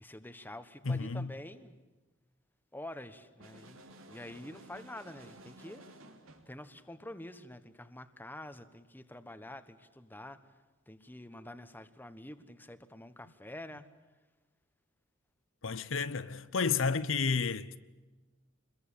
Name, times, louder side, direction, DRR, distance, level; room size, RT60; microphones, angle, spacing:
voice 1, 0.0-1.7 2.7-3.8 4.1-5.8 6.5-10.4 10.9-13.9, left 1 dB, 10° left, 1.3 m, -47 dB
voice 2, 0.8-1.3 15.6-17.8, left 5 dB, 70° left, 0.8 m, -31 dB
sound 1, 3.4-6.6, right 1 dB, 85° right, 3.2 m, -54 dB
27.0 x 22.0 x 8.5 m
head